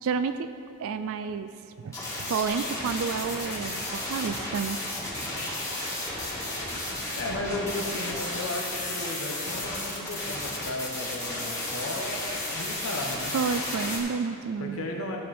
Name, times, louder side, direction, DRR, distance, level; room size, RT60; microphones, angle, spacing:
voice 1, 0.0-0.5 0.8-1.5 1.8-4.8 13.3-14.9, right 5 dB, 65° right, 10 dB, 0.4 m, -30 dB
sound 1, 1.8-14.0, left 1 dB, 15° left, 2.0 m, -33 dB
voice 2, 7.2-13.3 14.6-15.2, left 2 dB, 65° left, 0 dB, 1.3 m, -35 dB
14.0 x 6.8 x 4.3 m, 2.5 s
head